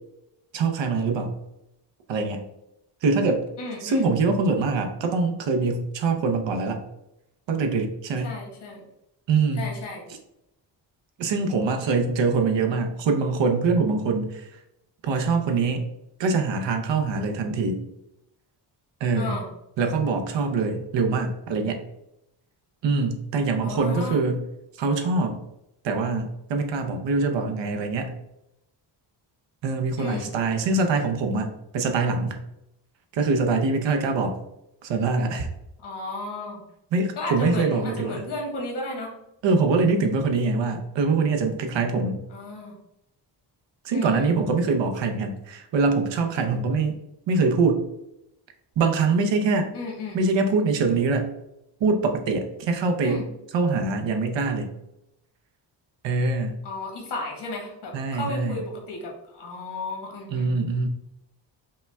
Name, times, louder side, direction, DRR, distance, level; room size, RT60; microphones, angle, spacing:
voice 1, 0.5-1.4 2.1-2.4 3.0-3.4 3.8-6.8 7.5-8.3 9.3-9.7 11.2-14.5 15.0-15.9 16.2-17.8 19.0-19.4 19.8-21.8 22.8-24.5 24.8-25.4 25.8-28.2 29.6-32.4 33.1-34.4 34.8-35.5 36.9-38.3 39.4-42.2 43.8-47.0 47.3-47.8 48.8-49.7 50.1-51.3 51.8-53.2 53.5-54.7 56.0-56.6 57.9-58.6 60.3-60.9, right 4 dB, 75° right, 5 dB, 0.8 m, -24 dB
voice 2, 3.6-4.1 8.2-8.8 9.6-10.0 19.1-19.5 23.6-24.2 30.0-30.3 35.8-36.6 37.2-39.1 42.3-42.8 43.9-44.3 49.7-50.2 53.0-53.2 56.6-60.5, left 2 dB, 65° left, 1 dB, 1.4 m, -34 dB
5.3 x 2.3 x 3.4 m, 0.85 s
cardioid pair, 110°, 44 cm